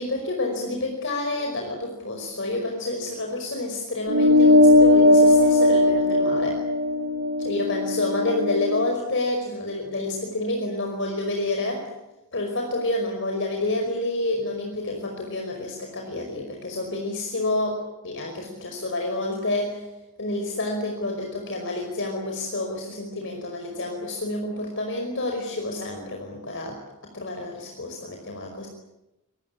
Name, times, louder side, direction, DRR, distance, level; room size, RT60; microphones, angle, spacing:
voice 1, 0.0-6.6 7.4-11.8 12.3-17.8 18.0-19.8 20.2-26.8 27.1-28.7, left 2 dB, 60° left, 2 dB, 5.1 m, -29 dB
sound 1, 4.1-8.9, left 1 dB, 80° right, 3.5 m, -18 dB
26.5 x 22.5 x 8.7 m, 0.96 s
head